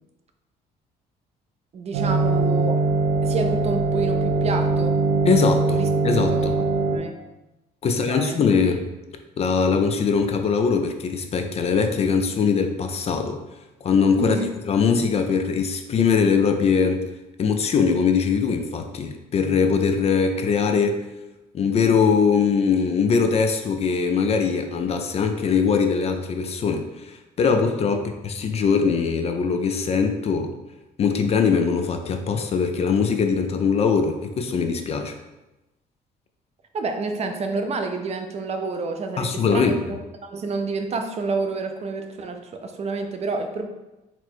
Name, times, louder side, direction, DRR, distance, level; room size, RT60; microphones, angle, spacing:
voice 1, 1.7-2.8 3.2-5.0 5.7-5.9 6.3-6.6 6.9-7.1 7.8-8.4 14.2-14.5 27.9-28.0 36.7-43.7, right 3 dB, 40° right, 6 dB, 0.5 m, -29 dB
sound 1, 1.9-7.0, right 3 dB, 80° right, 0.6 m, -22 dB
voice 2, 5.3-6.5 7.8-8.8 9.4-13.4 13.8-14.4 14.7-17.0 17.4-21.0 21.5-30.5 31.0-35.1 39.2-39.8, left 5 dB, 40° left, 6 dB, 0.4 m, -21 dB
4.3 x 2.0 x 4.4 m, 1.0 s
cardioid pair, 110°, 17 cm